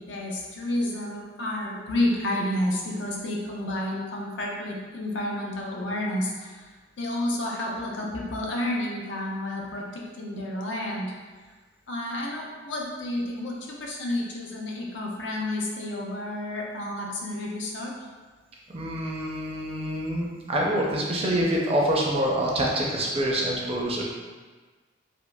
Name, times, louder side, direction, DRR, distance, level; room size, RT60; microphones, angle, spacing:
voice 1, 0.0-6.7 7.0-11.1 11.9-17.9, left 1 dB, 70° left, -2 dB, 0.6 m, -30 dB
voice 2, 18.7-24.0, right 1 dB, 30° right, -3 dB, 0.5 m, -26 dB
4.8 x 2.0 x 2.2 m, 1.4 s
head